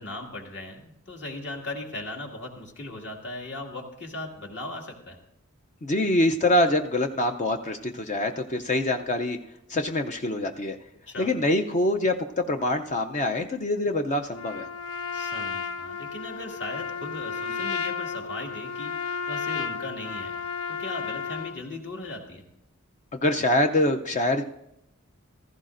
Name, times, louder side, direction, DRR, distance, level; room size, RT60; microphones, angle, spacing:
voice 1, 0.0-5.2 11.1-11.3 15.1-20.3 20.7-22.4, left 2 dB, 55° left, 1 dB, 2.1 m, -38 dB
voice 2, 5.8-9.4 9.7-10.8 11.2-14.7 23.1-24.4, left 1 dB, 35° left, 6 dB, 0.5 m, -25 dB
Trumpet, 14.3-21.6, left 6 dB, 80° left, 0.6 m, -33 dB
15.5 x 15.0 x 2.6 m, 0.82 s
head